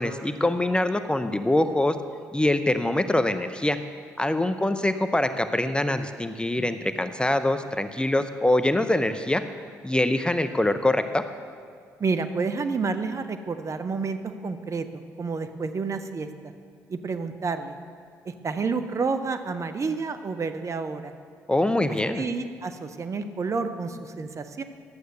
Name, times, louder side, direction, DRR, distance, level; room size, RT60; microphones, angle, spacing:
voice 1, 0.0-1.9 2.3-3.8 4.2-9.4 9.8-11.2 21.5-22.3, left 1 dB, 10° left, 9 dB, 0.7 m, -24 dB
voice 2, 12.0-14.2 14.4-14.9 15.2-16.5 16.9-17.8 18.2-21.1 22.1-24.6, right 4 dB, 40° right, 9 dB, 0.8 m, -29 dB
11.5 x 7.9 x 6.6 m, 2.1 s
hypercardioid pair, 50°, 8 cm